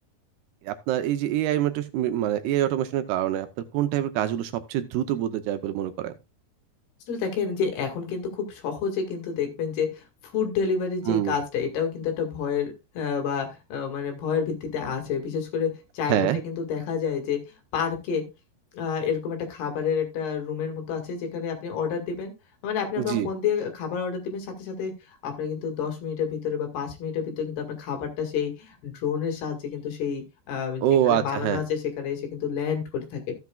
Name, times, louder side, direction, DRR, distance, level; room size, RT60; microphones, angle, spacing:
voice 1, 0.6-3.5 3.7-6.1 11.1-11.4 16.1-16.4 23.0-23.3 30.8-31.6, right 12 dB, 80° right, 10 dB, 2.6 m, -25 dB
voice 2, 7.1-17.4 17.7-18.2 18.7-22.3 22.6-33.3, left 6 dB, 70° left, 4 dB, 4.0 m, -29 dB
14.5 x 8.3 x 2.3 m, 0.25 s
omnidirectional pair, 4.9 m